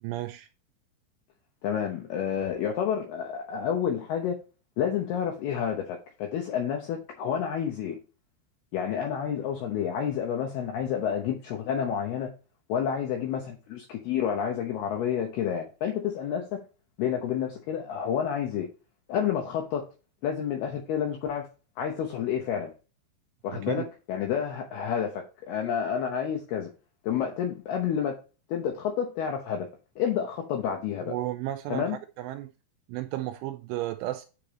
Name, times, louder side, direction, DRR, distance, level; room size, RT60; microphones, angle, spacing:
voice 1, 0.0-0.5 23.5-23.9 31.1-31.9 32.2-32.5 32.9-34.3, right 15 dB, 85° right, 2.8 m, -33 dB
voice 2, 1.6-4.4 4.8-8.0 8.7-12.3 12.7-16.6 17.0-18.7 19.1-19.9 20.2-21.5 21.8-22.7 23.4-26.7 27.0-28.2 28.5-29.7 30.0-31.1 31.7-32.0, left 8 dB, 80° left, 2.3 m, -29 dB
9.1 x 5.1 x 3.0 m
omnidirectional pair, 5.9 m